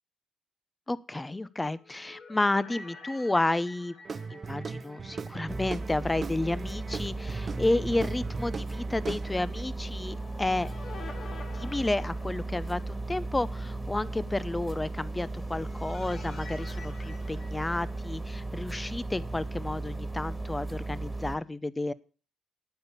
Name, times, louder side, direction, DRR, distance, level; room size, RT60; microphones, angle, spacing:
voice 1, 0.9-3.9 4.3-10.7 11.5-21.9, left 2 dB, 15° left, 17 dB, 0.8 m, -31 dB
sound 1, 1.6-5.9 6.2-6.3 9.9-13.0 15.0-18.4, left 3 dB, 55° left, 3.2 m, -49 dB
Guitar / Drum, 4.0-9.6, right 4 dB, 40° right, 0.8 m, -39 dB
sound 2, 5.5-21.3, right 2 dB, 10° right, 2.1 m, -36 dB
12.5 x 8.9 x 6.8 m, 0.38 s
cardioid pair, 90°, 0 cm